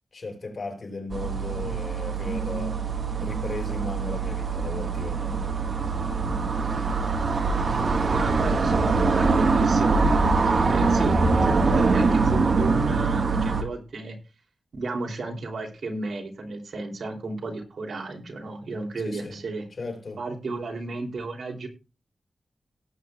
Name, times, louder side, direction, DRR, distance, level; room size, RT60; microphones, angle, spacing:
voice 1, 0.1-2.8 3.2-5.6 19.0-19.4 19.8-20.2, left 3 dB, 50° left, 4.6 m, -36 dB
sound 1, 1.1-13.6, right 4 dB, 60° right, 1.7 m, -23 dB
voice 2, 8.1-14.2 14.7-19.7 20.2-21.7, right 3 dB, 80° right, 3.2 m, -33 dB
18.5 x 8.4 x 2.4 m
wide cardioid pair, 180°, 0 cm